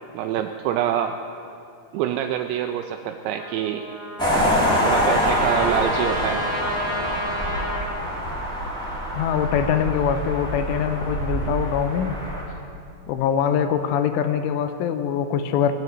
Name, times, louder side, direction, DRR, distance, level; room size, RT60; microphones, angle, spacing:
voice 1, 0.1-1.2 1.9-3.8 4.8-6.4, right 10 dB, 85° right, 6 dB, 2.6 m, -25 dB
Trumpet, 3.3-7.9, equal, 45° right, 1.4 m, -30 dB
sound 1, 4.2-12.4, equal, ahead, 2.1 m, -25 dB
voice 2, 9.1-12.2 13.1-15.7, left 8 dB, 85° left, 9 dB, 3.2 m, -23 dB
18.5 x 7.8 x 9.4 m, 2.5 s
omnidirectional pair, 5.7 m